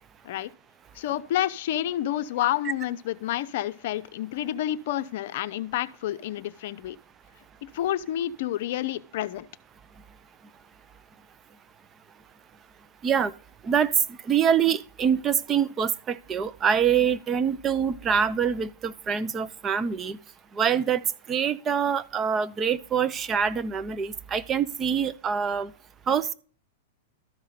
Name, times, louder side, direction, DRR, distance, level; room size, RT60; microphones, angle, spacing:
voice 1, 1.0-7.0 7.6-9.5, left 12 dB, 60° left, 0.7 m, -29 dB
voice 2, 14.2-20.2 20.5-21.0 21.3-25.7 26.1-26.3, right 7 dB, 25° right, 0.6 m, -25 dB
13.0 x 5.6 x 5.0 m
hypercardioid pair, 130°, 0 cm